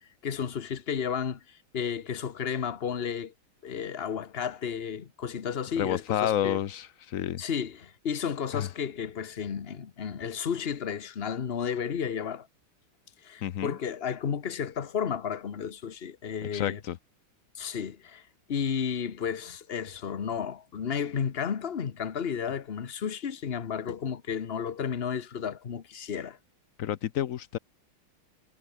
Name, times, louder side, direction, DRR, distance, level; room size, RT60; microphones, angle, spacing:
voice 1, 0.2-3.3 3.6-6.6 7.4-12.5 13.2-16.8 17.5-26.4, left 7 dB, 40° left, 1.0 m, -32 dB
voice 2, 5.8-7.4 8.5-8.7 13.4-13.8 16.5-17.0 26.8-27.6, left 11 dB, 85° left, 0.7 m, -30 dB
omnidirectional pair, 2.3 m